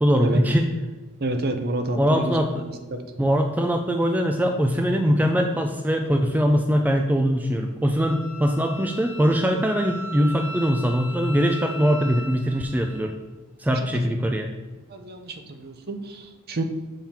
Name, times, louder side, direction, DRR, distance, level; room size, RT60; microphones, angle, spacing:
voice 1, 0.0-0.7 2.0-2.6 3.2-13.1 13.6-14.5, equal, 10° right, 3 dB, 0.3 m, -22 dB
voice 2, 1.2-2.3 2.9-3.0 13.7-14.0 14.3-14.4 14.9-16.6, right 2 dB, 45° right, 6 dB, 0.7 m, -29 dB
Wind instrument woodwind instrument, 8.0-13.1, equal, 75° left, 1.4 m, -38 dB
7.2 x 3.8 x 4.3 m, 1.2 s
head